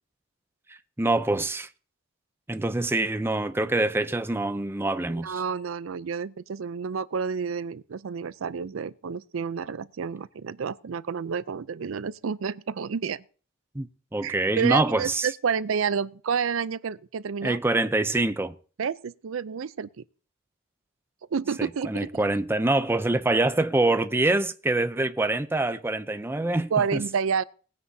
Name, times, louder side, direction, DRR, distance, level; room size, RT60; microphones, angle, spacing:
voice 1, 0.7-1.7 2.5-5.4 13.7-13.9 14.1-15.3 17.4-18.6 21.6-27.0, right 2 dB, 10° right, 0.5 m, -25 dB
voice 2, 5.1-13.2 14.2-17.6 18.8-19.9 21.3-22.1 26.7-27.4, right 6 dB, 75° right, 0.5 m, -29 dB
19.5 x 9.6 x 2.7 m
head